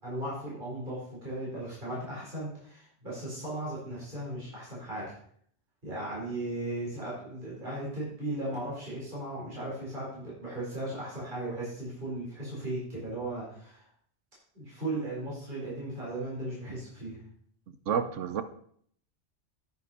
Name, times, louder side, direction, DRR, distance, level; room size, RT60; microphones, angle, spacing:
voice 1, 0.0-5.1 5.8-13.8 14.5-17.2, right 1 dB, 40° right, -7 dB, 5.1 m, -36 dB
voice 2, 17.9-18.4, right 7 dB, 90° right, 11 dB, 1.2 m, -29 dB
9.6 x 9.6 x 4.3 m, 0.62 s
omnidirectional pair, 1.2 m